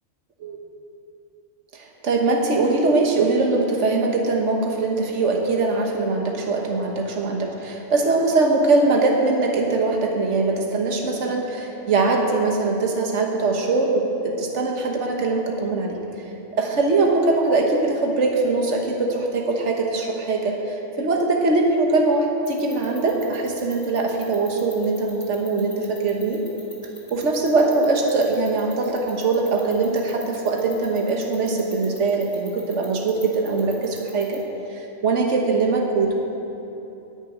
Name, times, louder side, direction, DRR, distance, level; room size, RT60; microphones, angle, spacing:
voice 1, 1.7-16.3 16.6-26.4 27.1-34.4 34.7-36.1, right 3 dB, 75° right, 1 dB, 1.6 m, -22 dB
sound 1, 22.4-34.4, left 1 dB, 30° left, 2.7 m, -42 dB
10.5 x 9.8 x 9.1 m, 2.9 s
omnidirectional pair, 1.2 m